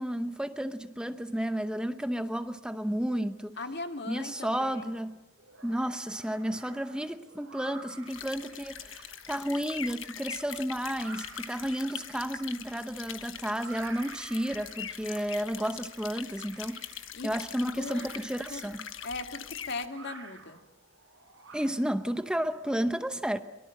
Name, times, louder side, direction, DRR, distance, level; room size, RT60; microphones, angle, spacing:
voice 1, 0.0-3.6 4.1-5.2 5.6-18.9 21.5-23.4, equal, 5° right, 10 dB, 0.8 m, -32 dB
voice 2, 3.6-4.9 17.1-17.3 17.8-18.1 18.5-18.6 19.0-20.6, left 3 dB, 60° left, 6 dB, 2.0 m, -38 dB
sound 1, 4.3-5.0 5.4-22.1, right 3 dB, 80° right, 7.0 m, -51 dB
sound 2, 8.1-19.9, left 9 dB, 80° left, 1.3 m, -43 dB
23.5 x 22.5 x 7.7 m, 1.0 s
head